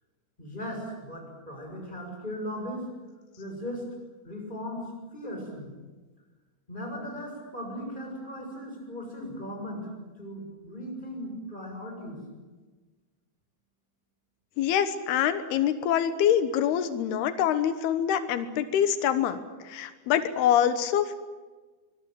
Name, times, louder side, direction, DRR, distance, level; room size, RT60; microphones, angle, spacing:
voice 1, 0.4-2.9 3.4-3.8 4.2-5.7 6.7-9.9 10.2-12.2, equal, 10° left, 2 dB, 6.9 m, -37 dB
voice 2, 14.6-19.4 19.7-21.2, left 9 dB, 90° left, 11 dB, 3.2 m, -25 dB
24.5 x 21.5 x 9.1 m, 1.3 s
omnidirectional pair, 4.4 m